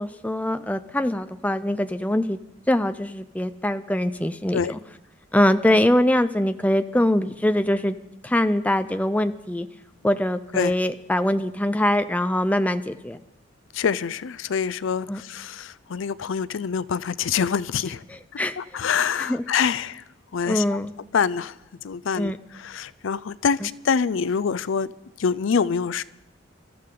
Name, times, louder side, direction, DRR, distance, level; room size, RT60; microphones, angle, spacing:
voice 1, 0.0-2.4 2.7-4.8 5.3-7.9 8.2-9.7 10.0-13.2 15.1-15.2 18.4-18.6 19.2-19.4 20.5-20.9 22.2-22.4, left 1 dB, 5° left, 0.4 m, -23 dB
voice 2, 13.7-18.0 18.6-20.0 20.3-20.8 21.1-21.6 21.8-24.9 25.2-26.0, left 6 dB, 70° left, 0.4 m, -25 dB
25.0 x 13.5 x 3.8 m
head